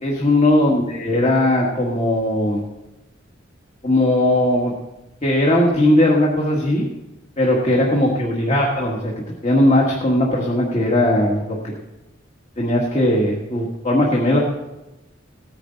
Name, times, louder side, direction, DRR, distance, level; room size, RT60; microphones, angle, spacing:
voice 1, 0.0-2.6 3.8-4.7 5.2-6.9 7.4-9.1 9.4-11.7 12.6-14.4, left 1 dB, 35° left, -2 dB, 1.7 m, -18 dB
17.0 x 9.8 x 4.0 m, 0.98 s
head